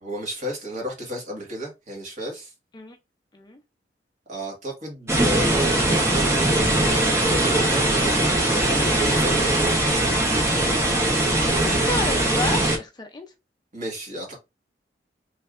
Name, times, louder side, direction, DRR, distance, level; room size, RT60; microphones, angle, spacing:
voice 1, 0.0-2.5 4.3-9.5 13.7-14.4, equal, 45° right, 1.4 m, -32 dB
sound 1, 5.1-12.8, right 1 dB, 15° right, 0.7 m, -21 dB
voice 2, 11.5-13.3, left 2 dB, 25° left, 0.4 m, -31 dB
3.2 x 2.7 x 2.4 m
head